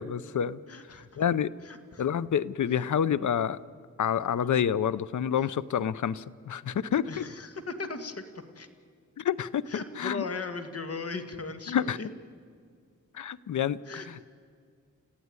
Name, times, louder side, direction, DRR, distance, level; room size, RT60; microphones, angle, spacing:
voice 1, 0.0-0.6 0.9-1.5 2.0-3.6 4.0-7.2 9.2-9.7 10.0-10.2 11.7-12.0 13.1-13.8 14.1-14.2, left 8 dB, 70° left, 17 dB, 0.7 m, -28 dB
voice 2, 0.7-1.3 1.6-2.0 2.7-2.9 4.4-4.6 7.1-8.7 9.7-12.1 13.9-14.1, left 4 dB, 50° left, 8 dB, 2.0 m, -38 dB
29.5 x 15.0 x 9.7 m, 2.1 s
wide cardioid pair, 95°, 31 cm